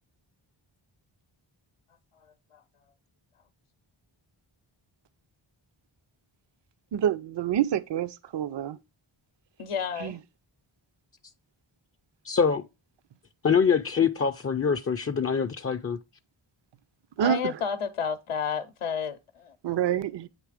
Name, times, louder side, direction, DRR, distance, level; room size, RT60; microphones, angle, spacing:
voice 1, 6.9-8.8 10.0-10.2 17.2-17.6 19.6-20.3, right 10 dB, 60° right, 0.5 m, -27 dB
voice 2, 9.6-10.2 17.2-19.6, left 7 dB, 85° left, 0.7 m, -31 dB
voice 3, 12.2-12.6 13.4-16.0, left 6 dB, 30° left, 0.4 m, -24 dB
8.9 x 3.2 x 4.8 m
wide cardioid pair, 95°, 50 cm